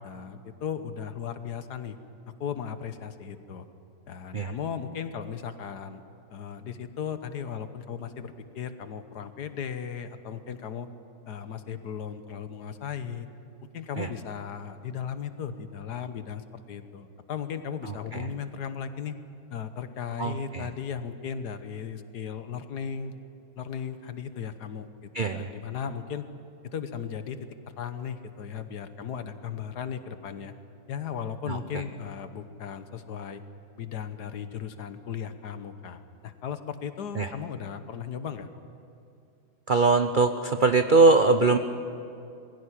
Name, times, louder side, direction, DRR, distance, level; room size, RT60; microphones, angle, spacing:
voice 1, 0.0-2.0 2.4-3.6 4.1-6.0 6.3-10.9 11.3-13.3 13.7-19.2 19.5-23.1 23.6-24.9 25.2-26.3 26.7-27.4 27.8-30.5 30.9-33.4 33.8-38.5, left 7 dB, 65° left, 10 dB, 1.5 m, -36 dB
voice 2, 20.2-20.7 25.1-25.5 31.5-31.8 37.2-37.3 39.7-41.6, right 3 dB, 70° right, 8 dB, 0.4 m, -22 dB
21.5 x 16.0 x 9.9 m, 2.5 s
omnidirectional pair, 2.0 m